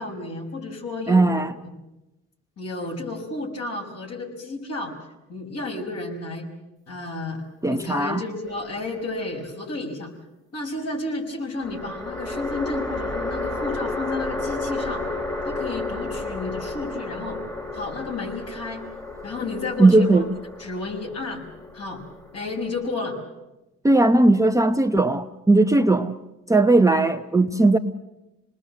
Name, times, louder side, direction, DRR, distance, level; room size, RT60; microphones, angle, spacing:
voice 1, 0.0-1.3 2.6-4.9 5.3-6.5 6.9-7.4 7.7-10.1 10.5-15.0 15.4-17.4 17.7-18.9 19.2-20.2 20.6-21.4 21.7-22.0 22.3-23.2, left 2 dB, 55° left, 2 dB, 5.8 m, -32 dB
voice 2, 1.1-1.5 7.6-8.2 19.8-20.2 23.8-26.2 26.5-27.8, right 2 dB, 10° right, 5 dB, 0.8 m, -18 dB
sound 1, 8.5-9.3 11.6-23.0, left 2 dB, 15° left, 2.4 m, -32 dB
27.0 x 20.0 x 7.6 m, 0.98 s
cardioid pair, 90°, 30 cm